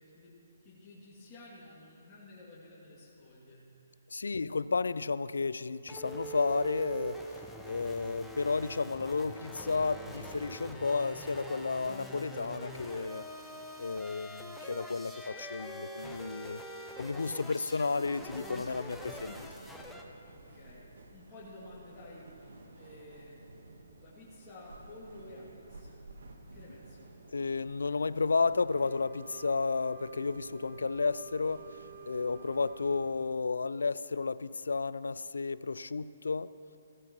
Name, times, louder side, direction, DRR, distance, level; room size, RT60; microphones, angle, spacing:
voice 1, 0.0-4.0 4.3-4.6 20.2-23.4 24.0-26.1 26.5-27.2, left 1 dB, 20° left, -9 dB, 2.4 m, -52 dB
voice 2, 4.1-7.2 7.7-13.3 13.8-16.6 17.0-19.5 27.3-31.7 32.1-36.5, left 4 dB, 80° left, 17 dB, 0.3 m, -32 dB
sound 1, 5.9-20.0, right 1 dB, ahead, 0.8 m, -44 dB
sound 2, 18.1-33.3, right 2 dB, 70° right, 1.3 m, -54 dB
Wind instrument woodwind instrument, 28.7-33.1, right 8 dB, 35° right, 0.7 m, -51 dB
15.5 x 14.0 x 3.0 m, 2.8 s
hypercardioid pair, 140°, 0 cm